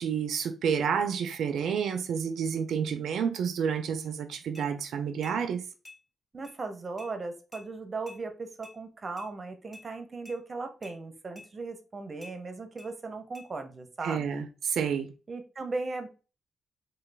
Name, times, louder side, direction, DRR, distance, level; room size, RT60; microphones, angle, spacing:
voice 1, 0.0-5.6 14.0-15.1, right 7 dB, 75° right, 0.4 m, -29 dB
sound 1, 4.5-4.7 5.2-5.4 5.8-6.0 6.4-6.6 7.0-7.1 7.5-7.7 8.1-8.2 8.6-8.8 9.2-9.3 9.7-9.9 10.3-10.4 10.8-11.0 11.4-11.5 12.2-12.4 12.8-12.9 13.3-13.5, left 2 dB, 25° left, 1.5 m, -49 dB
voice 2, 6.3-14.5 15.3-16.1, right 3 dB, 30° right, 0.6 m, -37 dB
3.1 x 2.2 x 3.3 m
cardioid pair, 115°, 0 cm